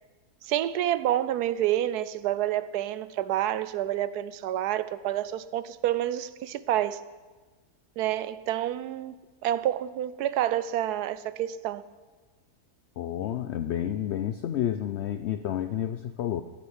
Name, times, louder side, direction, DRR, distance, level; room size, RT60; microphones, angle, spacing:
voice 1, 0.4-7.0 8.0-11.8, right 12 dB, 85° right, 1.1 m, -28 dB
voice 2, 13.0-16.4, left 11 dB, 75° left, 0.6 m, -30 dB
14.0 x 6.7 x 9.7 m
omnidirectional pair, 1.7 m